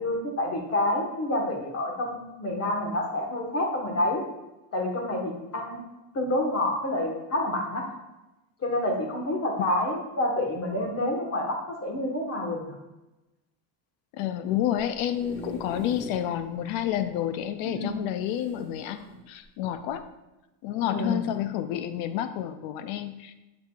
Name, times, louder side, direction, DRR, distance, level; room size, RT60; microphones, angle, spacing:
voice 1, 0.0-4.2 4.7-5.8 6.1-7.8 8.6-12.8 17.6-18.0 20.9-21.2, left 1 dB, 30° left, 1 dB, 1.5 m, -28 dB
voice 2, 14.1-19.0 19.3-20.0 20.6-23.4, left 11 dB, 70° left, 11 dB, 0.7 m, -29 dB
Mulitple Classroom chairs sliding back, 14.8-16.3 16.8-16.9 17.1-17.2 18.3-19.2 19.9-20.1, left 1 dB, ahead, 1.8 m, -42 dB
7.0 x 6.4 x 2.4 m, 1.0 s
supercardioid pair, 125°, 49 cm